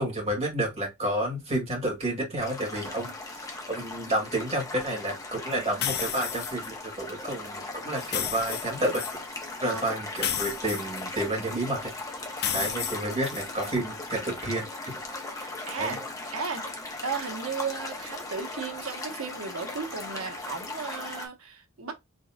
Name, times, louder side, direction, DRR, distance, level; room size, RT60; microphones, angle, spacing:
voice 1, 0.0-9.0 9.6-11.9 12.5-15.0 15.8-15.9, right 1 dB, 30° right, 2.3 m, -30 dB
sound 1, 2.4-21.3, left 2 dB, 15° left, 0.9 m, -38 dB
sound 2, 5.8-6.7 8.0-9.2 10.2-11.5 12.4-13.7, left 9 dB, 50° left, 0.6 m, -32 dB
voice 2, 9.6-10.4 12.5-13.1 15.3-16.0 16.3-16.6 17.0-21.9, right 5 dB, 80° right, 1.1 m, -35 dB
4.0 x 3.6 x 2.3 m
head